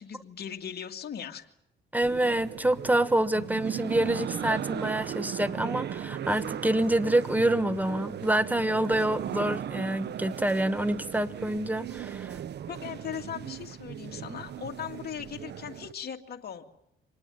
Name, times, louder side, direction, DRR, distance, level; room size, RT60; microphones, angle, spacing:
voice 1, 0.0-1.5 12.7-16.6, left 8 dB, 55° left, 3 dB, 2.2 m, -38 dB
voice 2, 1.9-12.4, right 1 dB, 10° right, 13 dB, 1.3 m, -27 dB
sound 1, 2.0-15.9, right 9 dB, 60° right, 0.9 m, -37 dB
25.0 x 19.5 x 9.0 m, 0.78 s
cardioid pair, 90°, 20 cm